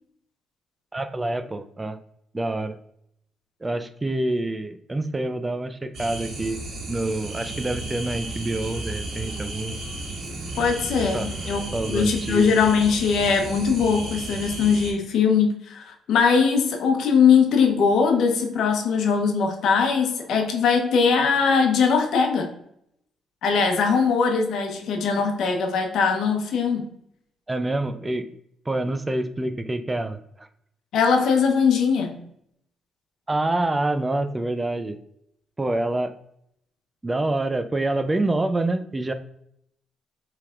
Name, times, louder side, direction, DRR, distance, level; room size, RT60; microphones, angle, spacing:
voice 1, 0.9-2.0 2.3-2.8 3.6-6.6 6.9-9.8 11.1-11.3 11.7-12.5 27.5-28.4 28.7-30.5 33.3-35.0 35.6-36.1 37.0-39.1, right 2 dB, 20° right, 9 dB, 0.4 m, -27 dB
sound 1, 5.9-14.9, right 2 dB, 65° right, 1.6 m, -33 dB
voice 2, 10.6-11.6 11.9-22.5 23.4-26.9 30.9-32.2, left 5 dB, 75° left, 3 dB, 0.9 m, -21 dB
5.6 x 3.4 x 2.4 m, 0.74 s
cardioid pair, 90°, 0 cm